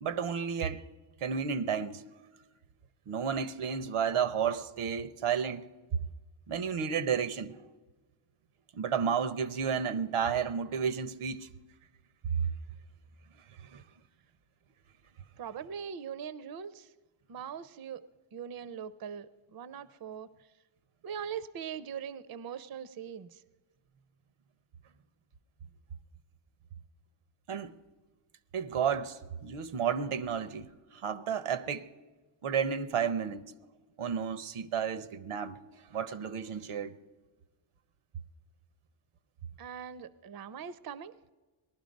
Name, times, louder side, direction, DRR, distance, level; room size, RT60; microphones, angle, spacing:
voice 1, 0.0-0.8 1.2-2.0 3.1-5.7 6.5-7.6 8.7-11.5 12.3-12.5 13.6-13.8 27.5-27.7 28.5-31.9 32.4-33.4 34.0-35.6 35.9-36.9, right 7 dB, 85° right, 0.8 m, -32 dB
voice 2, 15.4-16.9 17.3-18.0 18.3-20.3 21.0-23.4 39.6-41.1, right 8 dB, 45° right, 0.5 m, -41 dB
18.5 x 12.0 x 5.2 m
wide cardioid pair, 125°, 50 cm